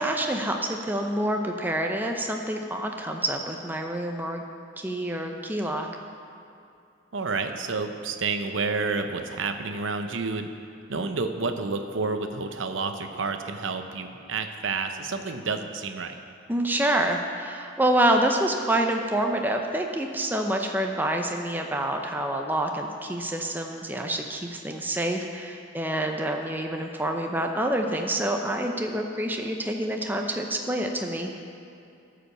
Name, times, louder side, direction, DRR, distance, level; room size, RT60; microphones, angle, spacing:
voice 1, 0.0-4.4 4.8-5.9 16.5-31.3, right 1 dB, 10° right, 3 dB, 0.6 m, -27 dB
voice 2, 7.1-10.5 10.9-16.1, right 4 dB, 80° right, 6 dB, 0.8 m, -29 dB
14.5 x 5.1 x 6.7 m, 2.6 s
head